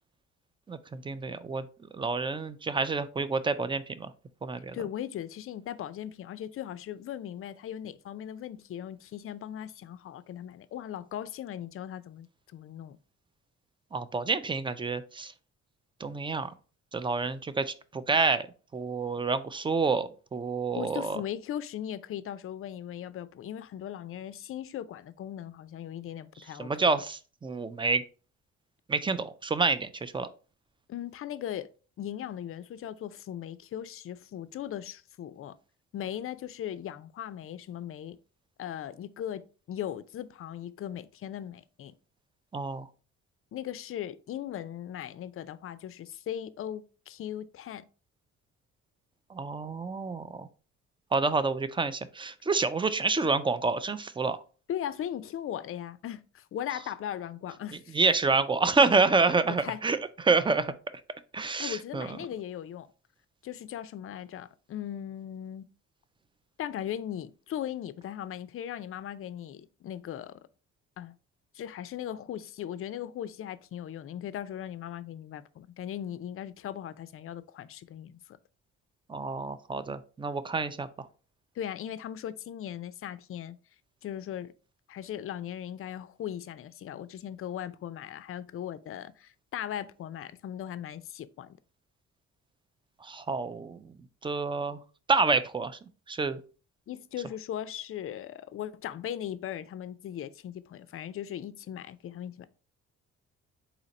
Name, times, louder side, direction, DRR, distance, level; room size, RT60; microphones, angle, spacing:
voice 1, 0.7-1.7 1.9-4.1 4.4-4.8 13.9-15.3 16.0-16.5 16.9-18.5 18.7-21.2 26.6-28.0 28.9-30.3 42.5-42.9 49.3-50.5 51.1-54.4 57.9-60.0 60.2-60.7 61.3-62.1 79.1-80.9 93.0-93.9 94.2-94.8 95.1-95.8 96.1-96.4, right 4 dB, 15° right, 0.4 m, -28 dB
voice 2, 4.7-13.0 20.7-26.7 30.9-31.7 32.0-35.5 35.9-38.2 38.6-41.9 43.5-47.9 54.7-58.0 59.5-59.8 61.6-62.9 63.4-65.7 66.6-70.4 71.0-71.2 71.5-78.4 81.6-83.6 84.0-84.5 84.9-91.6 96.9-102.5, left 10 dB, 45° left, 0.4 m, -38 dB
4.1 x 2.9 x 4.0 m
cardioid pair, 90°, 30 cm